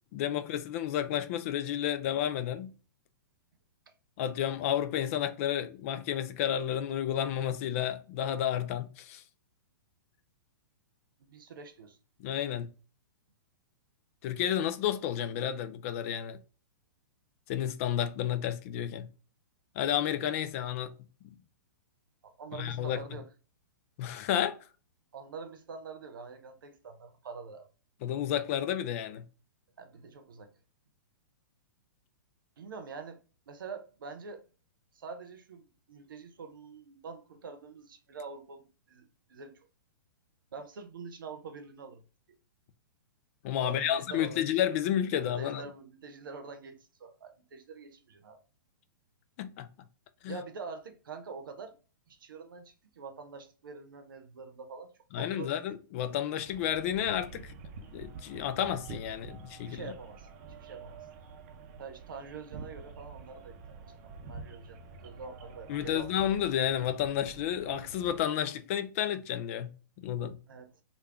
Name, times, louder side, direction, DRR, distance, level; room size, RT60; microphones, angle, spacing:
voice 1, 0.1-2.7 4.2-9.2 12.2-12.7 14.2-16.4 17.5-19.1 19.8-21.0 21.2-21.4 22.5-23.0 24.0-24.6 28.0-29.2 43.4-45.6 49.4-49.7 50.2-50.4 55.1-57.5 57.9-59.9 65.7-69.7 70.0-70.4, left 10 dB, 40° left, 0.4 m, -31 dB
voice 2, 11.2-12.0 22.2-23.3 25.1-27.7 29.8-30.6 32.6-34.4 34.9-39.7 40.5-42.4 43.6-44.5 45.1-48.4 50.3-51.7 52.1-55.7 59.4-61.1 61.8-66.1 70.5-70.8, right 4 dB, 80° right, 0.8 m, -46 dB
sound 1, 56.4-68.2, right 4 dB, 40° right, 0.6 m, -48 dB
3.4 x 2.3 x 3.4 m
hypercardioid pair, 140°, 11 cm